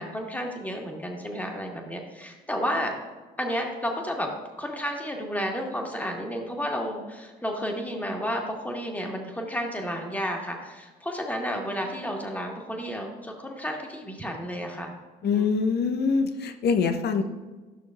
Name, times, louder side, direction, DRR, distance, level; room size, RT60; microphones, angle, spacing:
voice 1, 0.0-2.9 3.4-4.3 4.6-14.9 15.2-15.5, equal, 5° left, 1 dB, 1.6 m, -32 dB
voice 2, 15.2-17.2, left 5 dB, 50° left, 8 dB, 0.8 m, -24 dB
12.0 x 6.2 x 2.4 m, 1.3 s
hypercardioid pair, 60°, 21 cm